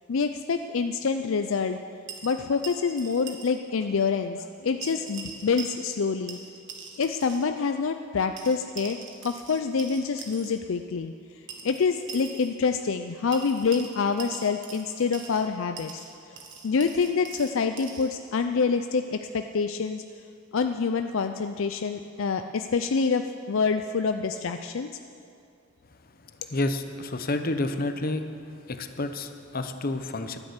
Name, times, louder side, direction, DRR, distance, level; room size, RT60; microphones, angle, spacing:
voice 1, 0.1-1.8 2.2-6.4 7.0-9.0 9.2-11.1 11.6-16.0 16.6-20.0 20.5-24.9, left 5 dB, 65° left, 7 dB, 0.4 m, -26 dB
sound 1, 2.1-3.6 3.8-3.9 4.8-6.0 6.3-7.5 8.4-10.5 11.5-12.5 13.3-15.5 15.8-18.1, right 5 dB, 55° right, 1.7 m, -42 dB
voice 2, 26.5-28.2 28.7-30.4, left 2 dB, 45° left, 8 dB, 0.8 m, -29 dB
12.5 x 9.8 x 8.2 m, 2.4 s
head